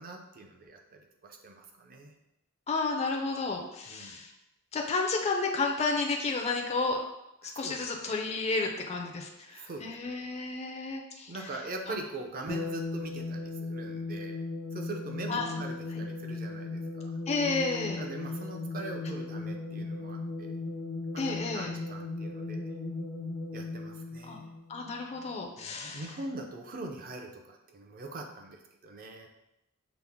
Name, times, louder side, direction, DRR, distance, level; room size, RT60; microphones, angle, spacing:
voice 1, 0.0-2.1 3.9-4.2 7.4-8.2 9.5-10.3 11.3-14.4 14.7-17.2 18.0-20.6 21.1-21.2 21.5-22.7 23.5-24.5 25.6-29.3, right 2 dB, 45° right, 3 dB, 0.5 m, -43 dB
voice 2, 2.7-4.3 4.7-7.0 7.4-11.3 15.3-15.5 17.3-18.1 21.2-21.7 24.3-24.4 24.7-26.0, left 3 dB, 30° left, 2 dB, 0.4 m, -31 dB
sound 1, 12.5-25.3, left 2 dB, 80° right, 1.3 m, -37 dB
5.9 x 2.0 x 3.5 m, 0.87 s
head